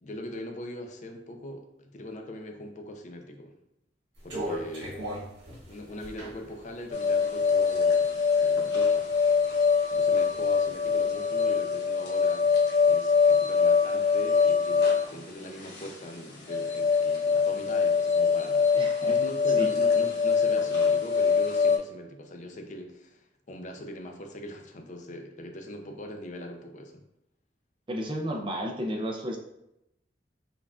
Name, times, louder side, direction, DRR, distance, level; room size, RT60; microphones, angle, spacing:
voice 1, 0.0-3.5 4.2-5.0 5.6-8.1 8.3-9.1 9.9-12.5 12.9-14.8 15.1-27.0, equal, 45° left, 4 dB, 0.5 m, -41 dB
sound 1, 4.2-8.1 8.6-9.6 9.9-10.9, equal, 85° right, 1.3 m, -38 dB
sound 2, 6.9-21.8, left 5 dB, 65° left, 0.8 m, -24 dB
voice 2, 18.7-19.2 19.6-19.7 27.9-29.4, equal, 30° right, 1 dB, 0.5 m, -32 dB
5.3 x 2.4 x 2.4 m, 0.84 s
head